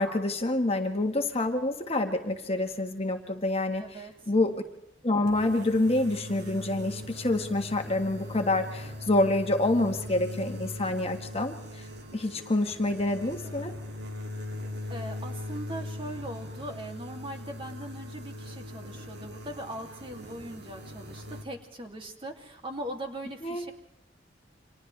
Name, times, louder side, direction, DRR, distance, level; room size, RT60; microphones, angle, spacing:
voice 1, 0.0-3.8 4.3-4.5 5.0-11.9 12.1-13.7 23.4-23.6, left 2 dB, 35° left, 5 dB, 1.6 m, -27 dB
voice 2, 3.8-4.1 13.1-13.7 14.9-23.7, right 1 dB, 30° right, 3 dB, 2.7 m, -40 dB
sound 1, 5.3-21.4, left 1 dB, 65° right, 2.5 m, -40 dB
29.5 x 26.0 x 3.4 m, 0.85 s
head